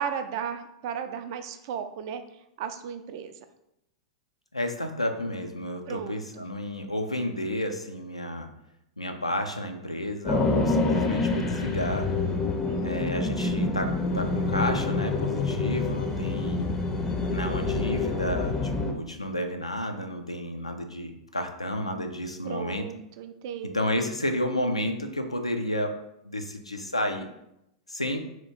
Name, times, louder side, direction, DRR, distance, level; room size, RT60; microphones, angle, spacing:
voice 1, 0.0-2.2 2.6-3.3 5.9-6.4 12.7-13.1 22.4-23.8, right 7 dB, 50° right, 8 dB, 0.3 m, -35 dB
voice 2, 4.5-8.5 9.0-12.1 12.8-16.7 17.3-22.9 23.6-26.0 26.2-27.3 27.9-28.2, left 1 dB, 85° left, 5 dB, 0.4 m, -31 dB
sound 1, 10.2-18.9, left 3 dB, 15° left, 0.5 m, -27 dB
2.9 x 2.4 x 4.2 m, 0.83 s
figure-of-eight pair, 95°, 3 cm